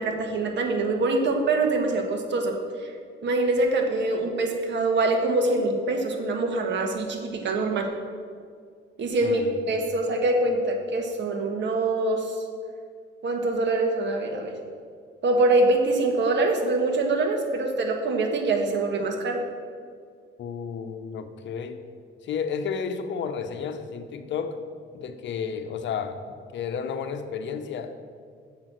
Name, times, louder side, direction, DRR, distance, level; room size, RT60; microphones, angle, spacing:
voice 1, 0.0-2.5 2.8-2.9 3.2-7.9 9.0-12.4 13.2-14.5 15.2-19.4, right 2 dB, 65° right, 3 dB, 1.5 m, -24 dB
voice 2, 9.2-9.9 20.4-21.8 22.2-24.6 24.9-28.0, left 6 dB, 70° left, 8 dB, 0.8 m, -32 dB
7.4 x 6.1 x 7.7 m, 2.2 s
cardioid pair, 90°, 20 cm